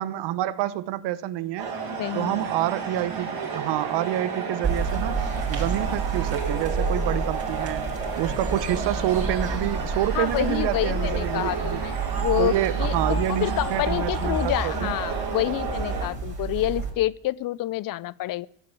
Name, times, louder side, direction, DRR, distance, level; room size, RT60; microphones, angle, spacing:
voice 1, 0.0-1.7 2.1-7.9 8.2-11.8 12.4-14.9, right 13 dB, 70° right, 17 dB, 0.9 m, -28 dB
sound 1, 1.6-16.1, right 5 dB, 55° right, 5.2 m, -32 dB
voice 2, 1.9-2.5 10.1-11.9 12.2-18.5, left 15 dB, 50° left, 22 dB, 0.5 m, -28 dB
sound 2, 4.6-16.9, right 4 dB, 35° right, 5.5 m, -30 dB
15.5 x 8.2 x 8.5 m, 0.72 s
cardioid pair, 100°, 42 cm